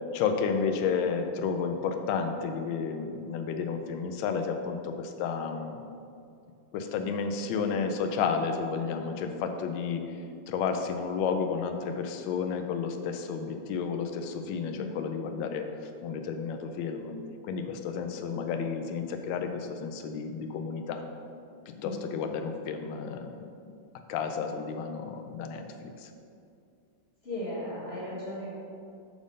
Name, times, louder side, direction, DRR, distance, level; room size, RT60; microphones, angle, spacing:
voice 1, 0.0-5.8 6.7-10.0 10.5-15.7 16.0-17.1 17.5-21.0 21.7-23.4 24.1-26.1, left 6 dB, 75° left, 6 dB, 1.2 m, -31 dB
voice 2, 14.6-14.9 21.7-22.1 27.2-28.6, left 1 dB, 35° left, -7 dB, 1.3 m, -37 dB
6.3 x 3.6 x 5.1 m, 2.4 s
omnidirectional pair, 2.2 m